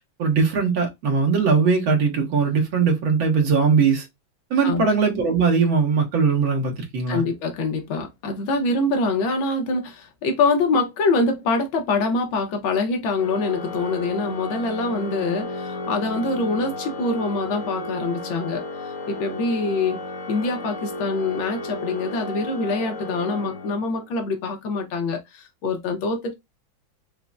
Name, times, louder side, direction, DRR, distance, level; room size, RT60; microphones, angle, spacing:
voice 1, 0.2-4.1 4.5-7.2, right 5 dB, 80° right, 2.0 m, -20 dB
voice 2, 7.1-20.0 20.3-26.3, left 3 dB, 80° left, 1.7 m, -25 dB
Organ, 13.2-24.1, left 2 dB, 55° left, 0.9 m, -33 dB
5.5 x 2.2 x 2.3 m
omnidirectional pair, 2.2 m